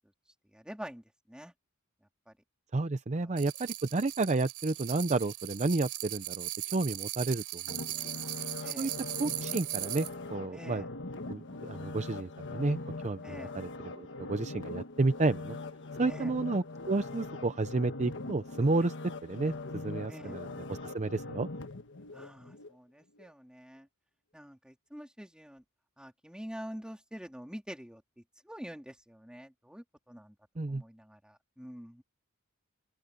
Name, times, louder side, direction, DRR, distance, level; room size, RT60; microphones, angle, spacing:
voice 1, 0.5-1.5 2.3-2.4 3.2-3.3 8.6-9.0 10.5-10.9 13.2-13.5 16.0-16.3 20.1-20.4 22.1-23.9 24.3-25.6 26.0-30.4 30.7-32.0, equal, 5° right, 3.7 m, -46 dB
voice 2, 2.7-7.8 8.8-8.9 9.2-10.8 11.3-12.8 13.0-15.6 16.0-18.9 19.2-21.5 30.6-30.8, right 3 dB, 35° right, 0.6 m, -31 dB
sound 1, 3.4-10.1, right 16 dB, 80° right, 4.4 m, -39 dB
sound 2, 7.7-22.7 23.2-23.3, left 2 dB, 60° left, 1.5 m, -42 dB
open air
head